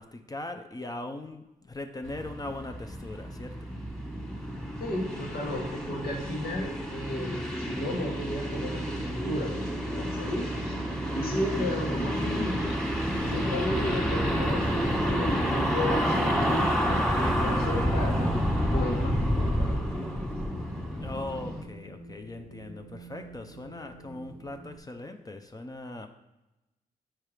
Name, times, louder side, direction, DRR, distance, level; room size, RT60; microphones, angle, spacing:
voice 1, 0.0-3.6 21.0-26.1, left 2 dB, 25° left, 6 dB, 0.5 m, -40 dB
sound 1, 2.0-21.6, equal, 5° left, 1.4 m, -29 dB
voice 2, 4.8-10.8 11.1-12.8 13.3-18.3 18.7-20.3, left 1 dB, 85° left, -1 dB, 1.6 m, -34 dB
Wind, 14.8-24.8, right 1 dB, 85° right, 0.5 m, -48 dB
5.6 x 4.5 x 4.9 m, 0.98 s
cardioid pair, 85°, 15 cm